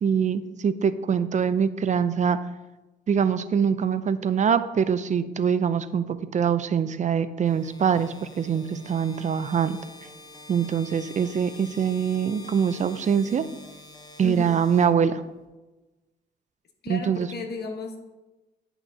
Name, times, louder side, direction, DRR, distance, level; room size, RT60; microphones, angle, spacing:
voice 1, 0.0-2.4 3.1-9.8 10.5-13.5 14.2-15.2 16.9-17.3, right 7 dB, 35° right, 13 dB, 0.5 m, -24 dB
sound 1, 7.4-15.5, left 3 dB, 20° left, 1.1 m, -47 dB
voice 2, 14.2-14.5 16.8-18.0, left 3 dB, 55° left, 4 dB, 1.3 m, -34 dB
10.0 x 5.8 x 2.8 m, 1.1 s
cardioid pair, 90°, 20 cm